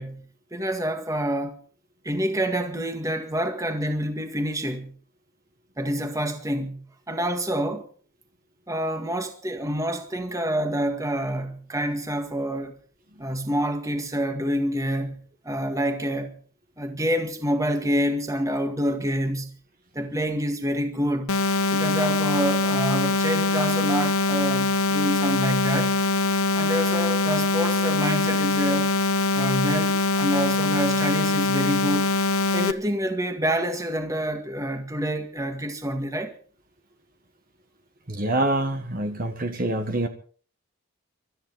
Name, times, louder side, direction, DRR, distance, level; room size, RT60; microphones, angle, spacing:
voice 1, 0.0-1.6 2.0-4.9 5.8-7.9 8.7-12.8 13.2-16.4 16.8-19.6 19.9-21.4 21.7-26.0 26.5-28.9 29.3-32.1 32.5-36.3, equal, 15° right, 1.9 m, -27 dB
sound 1, 21.3-32.7, left 2 dB, 85° left, 1.0 m, -23 dB
voice 2, 38.1-40.1, right 1 dB, 40° right, 1.6 m, -26 dB
24.5 x 13.5 x 4.0 m
head